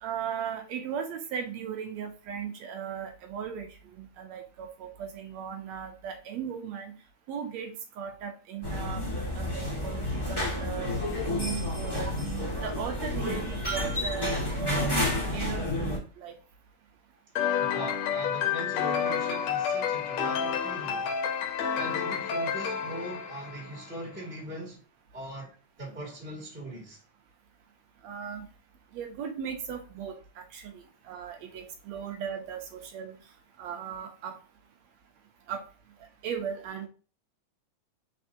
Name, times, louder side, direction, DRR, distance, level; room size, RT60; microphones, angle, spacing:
voice 1, 0.0-6.9 7.3-7.7 8.0-9.0 9.3-10.9 11.2-12.1 12.6-15.0 15.3-16.3 28.0-28.5 28.9-33.2 33.6-34.4 35.5-35.6 36.2-36.9, right 7 dB, 75° right, 1.8 m, -37 dB
sound 1, 8.6-16.0, left 1 dB, 15° left, 1.0 m, -30 dB
sound 2, 17.4-24.0, left 7 dB, 70° left, 1.8 m, -30 dB
voice 2, 17.6-21.2 21.7-24.8 25.1-25.5 25.8-27.0, right 1 dB, 5° right, 1.5 m, -40 dB
4.5 x 4.3 x 2.7 m
omnidirectional pair, 3.6 m